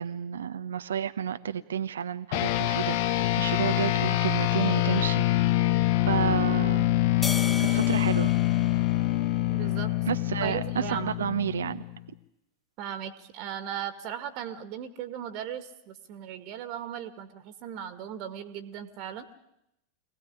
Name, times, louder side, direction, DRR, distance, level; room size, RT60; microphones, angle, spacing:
voice 1, 0.0-5.2 6.1-6.9 7.7-8.3 10.1-11.8, right 8 dB, 70° right, 10 dB, 0.9 m, -31 dB
sound 1, 2.3-12.0, left 15 dB, 50° left, 1.0 m, -25 dB
sound 2, 7.2-9.8, left 3 dB, 15° left, 1.2 m, -37 dB
voice 2, 9.5-9.9 10.4-11.1 12.8-19.3, right 9 dB, 45° right, 10 dB, 2.0 m, -37 dB
25.0 x 18.0 x 9.9 m, 0.82 s
figure-of-eight pair, 90°, 0 cm